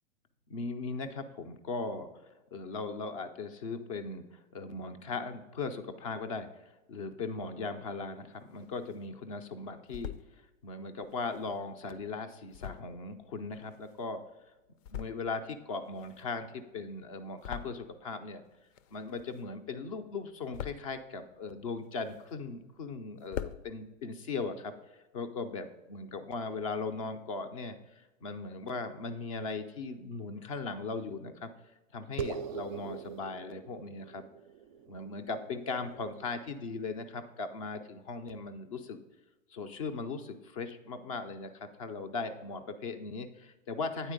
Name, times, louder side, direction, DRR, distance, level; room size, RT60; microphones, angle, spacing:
voice 1, 0.5-2.1 2.5-6.5 6.9-10.1 10.6-14.2 14.9-18.4 18.9-24.7 25.1-31.5 31.9-34.2 34.9-39.0 39.5-44.1, left 4 dB, 30° left, 8 dB, 0.3 m, -38 dB
sound 1, 8.1-9.1 9.6-10.3 11.0-14.3 14.7-15.5 15.7-18.2 18.4-19.7 20.0-21.0 21.5-22.6 22.9-23.0 23.2-23.6, left 10 dB, 75° left, 0.6 m, -44 dB
sound 2, 32.2-37.0, right 8 dB, 40° right, 0.4 m, -43 dB
8.9 x 4.2 x 5.1 m, 1.1 s
hypercardioid pair, 150°, 39 cm